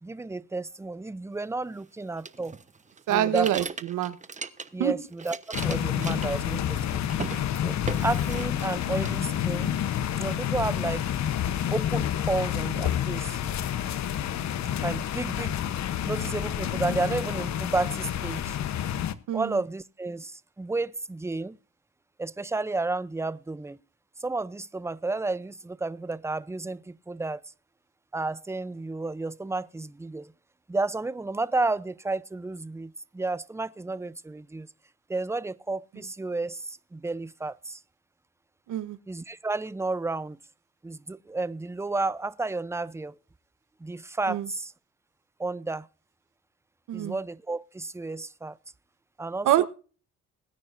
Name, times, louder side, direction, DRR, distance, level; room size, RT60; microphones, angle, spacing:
voice 1, 0.0-2.6 3.1-3.5 4.7-7.1 7.6-9.8 10.2-11.1 11.7-13.4 14.8-15.5 16.0-18.6 19.3-21.6 22.2-23.8 24.2-27.4 28.1-30.3 30.7-34.7 35.1-37.8 39.1-40.4 40.8-43.2 43.8-44.7 45.4-45.9 46.9-48.6 49.2-49.7, right 3 dB, 10° right, 0.6 m, -32 dB
sound 1, 2.2-4.9 5.1-6.8 7.1-7.4 7.9-8.7 9.0-9.8, right 4 dB, 25° right, 1.1 m, -38 dB
voice 2, 3.1-4.1 4.8-4.9 19.3-19.5 38.7-39.0 44.3-44.5 46.9-47.1 49.4-49.7, right 12 dB, 85° right, 1.2 m, -25 dB
sound 2, 5.5-19.1, left 10 dB, 65° left, 1.0 m, -29 dB
22.0 x 9.3 x 2.6 m
cardioid pair, 90°, 30 cm